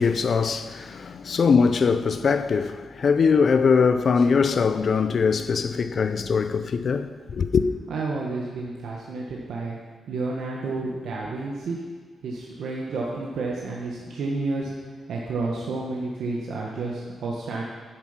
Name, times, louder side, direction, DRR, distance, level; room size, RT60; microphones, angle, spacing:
voice 1, 0.0-7.6, left 5 dB, 50° left, 0.6 m, -22 dB
voice 2, 7.9-9.8 10.1-11.8 12.2-14.7 15.1-17.6, right 3 dB, 80° right, 1.5 m, -30 dB
10.5 x 8.7 x 5.8 m
cardioid pair, 115°, 0 cm